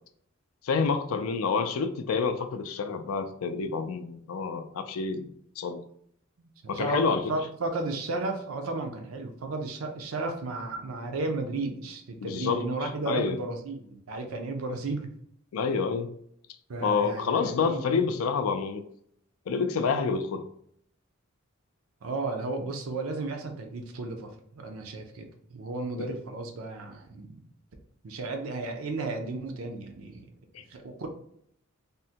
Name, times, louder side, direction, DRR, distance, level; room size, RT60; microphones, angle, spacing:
voice 1, 0.6-5.8 6.7-7.2 12.2-12.6 13.1-13.4 15.5-16.1 16.8-18.8 19.5-20.5 26.0-26.1 30.5-30.6, left 5 dB, 80° left, 9 dB, 0.4 m, -28 dB
voice 2, 6.4-15.1 16.7-17.8 22.0-27.4 28.0-30.3 30.7-31.1, right 2 dB, 85° right, 5 dB, 0.5 m, -34 dB
3.6 x 2.1 x 2.7 m, 0.69 s
head